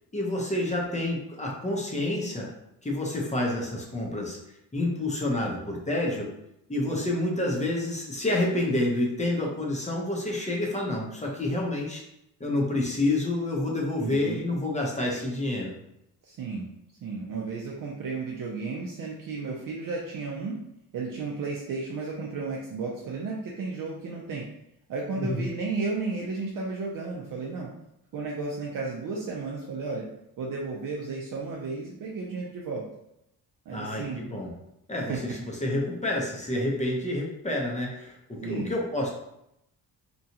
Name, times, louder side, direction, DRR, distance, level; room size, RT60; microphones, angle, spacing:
voice 1, 0.1-2.5 2.8-4.4 4.7-6.3 6.7-12.0 12.4-15.7 25.2-25.5 33.7-34.5 34.9-39.1, left 1 dB, 20° left, -2 dB, 0.7 m, -28 dB
voice 2, 14.0-14.5 16.2-16.7 17.0-20.6 20.9-24.4 24.9-27.7 28.1-30.0 30.4-32.8 33.7-34.2 35.0-35.2 38.4-38.7, right 4 dB, 55° right, -3 dB, 0.6 m, -33 dB
2.9 x 2.3 x 2.7 m, 0.82 s
cardioid pair, 90°, 39 cm